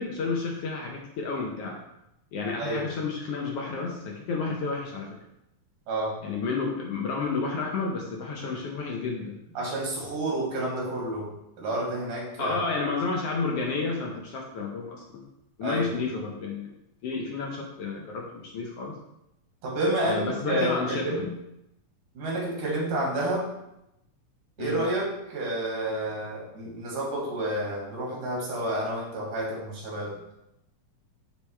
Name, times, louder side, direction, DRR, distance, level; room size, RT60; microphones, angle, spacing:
voice 1, 0.0-1.8 2.3-5.2 6.2-9.4 12.4-15.2 15.6-16.7 17.0-19.0 20.0-21.3 24.6-24.8, left 4 dB, 75° left, -1 dB, 1.4 m, -31 dB
voice 2, 9.5-11.3 11.6-12.6 15.6-15.9 19.6-21.3 22.1-23.5 24.6-30.1, right 1 dB, 80° right, -3 dB, 3.3 m, -29 dB
9.9 x 3.4 x 3.2 m, 0.85 s
omnidirectional pair, 3.6 m